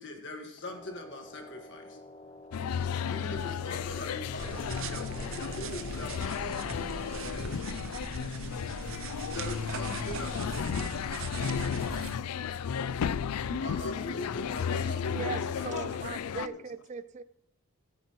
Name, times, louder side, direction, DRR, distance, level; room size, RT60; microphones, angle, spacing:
voice 1, 0.0-2.0 3.1-7.7 9.3-11.2 13.4-16.3, left 2 dB, 55° left, 3 dB, 1.8 m, -42 dB
sound 1, 0.7-7.0, left 2 dB, 30° left, 0.9 m, -49 dB
sound 2, 2.5-16.5, left 7 dB, 90° left, 0.4 m, -34 dB
voice 2, 3.0-3.5 8.6-9.2 10.8-10.9 13.5-16.6, left 3 dB, 70° left, 10 dB, 0.9 m, -42 dB
sound 3, 4.4-12.2, right 5 dB, 65° right, 0.6 m, -40 dB
voice 3, 15.1-17.2, right 5 dB, 30° right, 15 dB, 0.3 m, -39 dB
20.0 x 8.2 x 3.1 m, 0.82 s
head